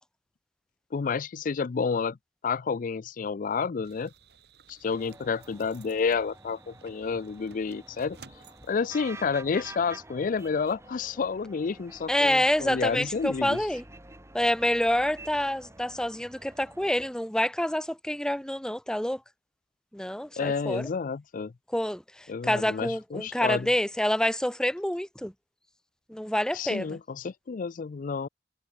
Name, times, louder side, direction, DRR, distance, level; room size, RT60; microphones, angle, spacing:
voice 1, 0.9-2.2 2.4-4.1 4.7-8.2 8.7-13.6 20.4-21.5 22.3-23.7 26.5-28.3, left 5 dB, 50° left, 0.4 m, -30 dB
sound 1, 3.8-9.0, right 5 dB, 65° right, 5.2 m, -55 dB
sound 2, 4.8-17.1, right 2 dB, 15° right, 5.0 m, -49 dB
voice 2, 12.1-13.8 14.3-19.2 19.9-20.9 21.7-25.3 26.1-27.0, left 1 dB, 5° left, 0.7 m, -27 dB
head